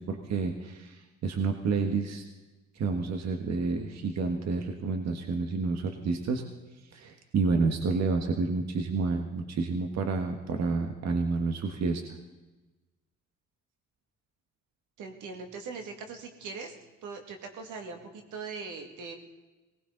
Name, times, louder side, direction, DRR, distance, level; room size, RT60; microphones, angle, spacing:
voice 1, 0.0-2.2 2.7-6.4 6.9-12.0, right 4 dB, 60° right, 4 dB, 1.6 m, -29 dB
voice 2, 15.0-16.7 17.0-19.2, right 4 dB, 85° right, 4 dB, 2.2 m, -41 dB
19.0 x 19.0 x 3.9 m, 1.2 s
cardioid pair, 90°, 30 cm